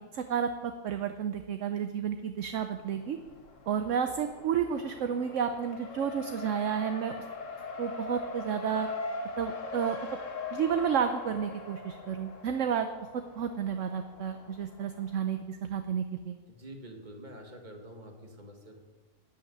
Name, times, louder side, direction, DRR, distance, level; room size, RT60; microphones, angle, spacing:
voice 1, 0.1-3.2 3.7-7.3 7.8-8.9 9.4-10.2 10.5-12.9 13.4-16.4, right 8 dB, 60° right, 8 dB, 1.0 m, -31 dB
Race car auto racing, 2.8-15.4, left 3 dB, 60° left, 1.6 m, -41 dB
voice 2, 16.5-18.8, right 1 dB, 30° right, 3 dB, 1.9 m, -47 dB
14.0 x 5.8 x 9.6 m, 1.3 s
omnidirectional pair, 1.6 m